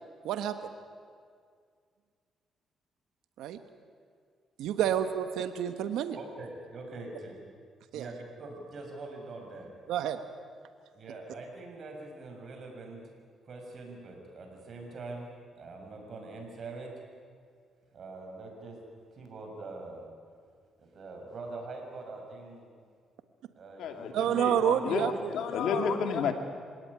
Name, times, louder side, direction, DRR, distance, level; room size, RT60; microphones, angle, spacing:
voice 1, 0.2-0.6 3.4-3.6 4.6-6.2 7.9-8.1 9.9-10.2 24.1-25.3, right 10 dB, 85° right, 9 dB, 1.2 m, -29 dB
voice 2, 6.1-7.4 7.9-9.8 10.9-13.1 13.4-17.1 17.9-20.2 20.8-22.7 23.6-25.3, right 3 dB, 55° right, 2 dB, 6.5 m, -44 dB
voice 3, 23.8-26.3, left 6 dB, 75° left, 6 dB, 2.7 m, -31 dB
27.0 x 17.5 x 9.8 m, 2.1 s
cardioid pair, 90°, 0 cm